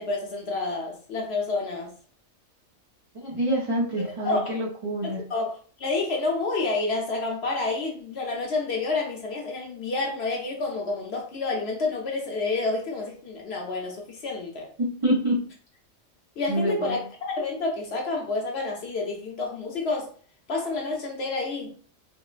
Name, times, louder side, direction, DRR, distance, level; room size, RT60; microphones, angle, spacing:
voice 1, 0.0-1.9 4.2-4.6 5.0-14.7 16.4-20.1 20.5-21.8, left 3 dB, 60° left, 0.9 m, -29 dB
voice 2, 3.1-5.2 14.8-15.5 16.5-16.9, right 1 dB, 40° right, 0.5 m, -26 dB
3.6 x 2.0 x 2.4 m
omnidirectional pair, 1.3 m